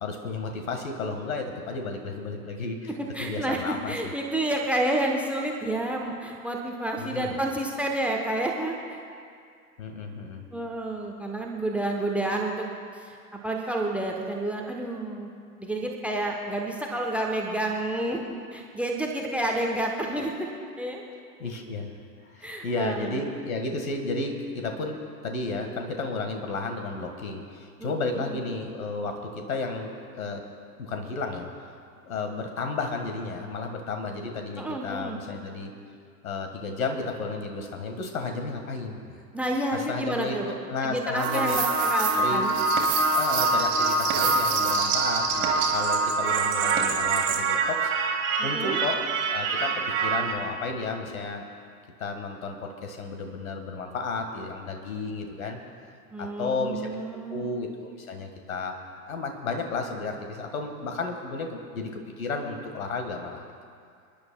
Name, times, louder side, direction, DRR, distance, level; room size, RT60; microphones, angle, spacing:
voice 1, 0.0-2.9 3.2-4.1 7.0-7.4 9.8-10.5 21.4-22.0 22.2-30.4 30.8-31.5 32.0-35.7 36.2-39.2 39.7-41.6 42.1-42.5 43.1-47.9 48.4-49.0 49.3-51.5 52.0-55.6 56.2-56.9 57.3-58.8 59.1-63.4, left 3 dB, 60° left, 4 dB, 1.8 m, -33 dB
voice 2, 3.1-9.0 10.5-12.7 12.9-15.3 15.6-20.5 20.8-21.0 22.4-23.2 27.8-28.4 34.6-35.2 39.3-40.5 40.8-42.6 48.4-48.8 56.1-57.5, right 1 dB, 5° right, 1 dB, 1.0 m, -30 dB
sound 1, 41.2-50.3, right 4 dB, 25° right, 1.8 m, -25 dB
28.5 x 10.5 x 2.3 m, 2.3 s
figure-of-eight pair, 95°, 45 cm